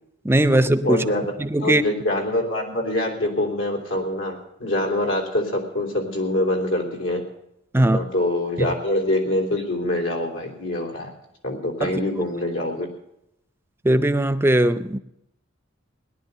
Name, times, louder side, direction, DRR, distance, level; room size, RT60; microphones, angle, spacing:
voice 1, 0.2-1.0 1.4-1.8 7.7-8.0 8.6-8.7 11.8-12.0 13.8-15.0, right 1 dB, 10° right, 12 dB, 0.6 m, -19 dB
voice 2, 0.8-1.3 1.6-7.2 7.7-11.1 11.4-12.9, left 1 dB, 80° left, 1 dB, 3.3 m, -25 dB
17.5 x 11.0 x 6.8 m, 0.82 s
head